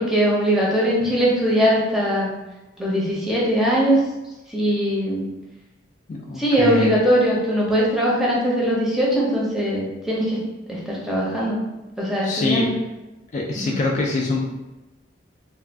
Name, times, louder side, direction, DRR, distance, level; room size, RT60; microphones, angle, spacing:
voice 1, 0.0-2.3 2.8-4.0 4.5-5.3 6.4-10.4 10.7-11.6 12.0-12.7 13.5-13.8, equal, ahead, -5 dB, 0.6 m, -20 dB
voice 2, 6.1-6.9 12.2-12.7 13.3-14.5, left 3 dB, 40° left, -2 dB, 0.3 m, -24 dB
2.4 x 2.2 x 3.3 m, 1.0 s
head